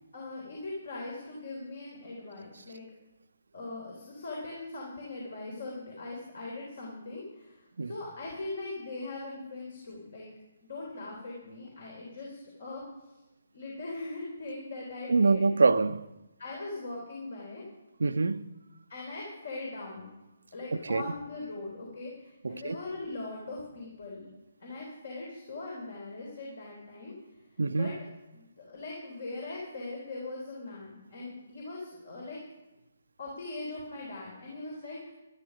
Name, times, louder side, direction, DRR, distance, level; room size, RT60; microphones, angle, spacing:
voice 1, 0.1-2.8 3.5-10.3 10.6-12.8 13.5-15.4 16.4-17.6 18.9-20.1 20.5-24.3 24.6-27.1 27.8-27.9 28.3-32.4 33.2-35.1, left 2 dB, 55° left, 3.5 m, -40 dB
voice 2, 15.1-16.0 18.0-18.5 20.7-21.1 22.4-22.8 27.6-27.9, right 3 dB, 65° right, 0.5 m, -25 dB
12.5 x 12.0 x 5.0 m
figure-of-eight pair, 140°, 0 cm